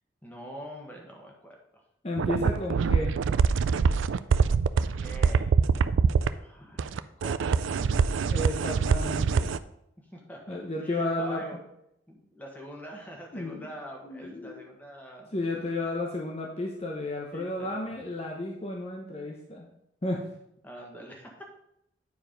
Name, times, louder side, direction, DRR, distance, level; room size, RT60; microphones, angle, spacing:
voice 1, 0.2-1.8 4.9-5.5 6.4-7.6 10.0-11.6 12.1-15.3 17.3-17.7 20.6-21.4, equal, 10° left, 0 dB, 1.4 m, -45 dB
voice 2, 2.0-3.1 8.3-9.5 10.5-11.4 13.3-13.7 14.0-14.6 15.3-19.7 20.0-20.3, left 2 dB, 30° left, -1 dB, 0.9 m, -32 dB
sound 1, 2.2-6.3 6.8-9.6, right 5 dB, 80° right, 0.4 m, -24 dB
9.5 x 4.7 x 5.1 m, 0.78 s
head